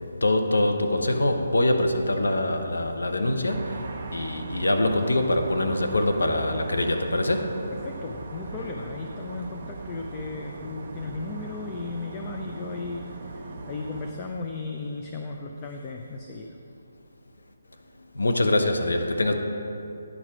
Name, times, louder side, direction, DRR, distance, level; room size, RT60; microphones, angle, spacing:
voice 1, 0.2-7.6 18.1-19.3, left 1 dB, 90° left, 4 dB, 0.9 m, -24 dB
sound 1, 3.5-14.1, right 3 dB, 40° right, 1.1 m, -39 dB
voice 2, 7.8-16.6, left 3 dB, 20° left, 2 dB, 0.5 m, -35 dB
10.0 x 4.8 x 5.9 m, 2.7 s
hypercardioid pair, 160°, 0 cm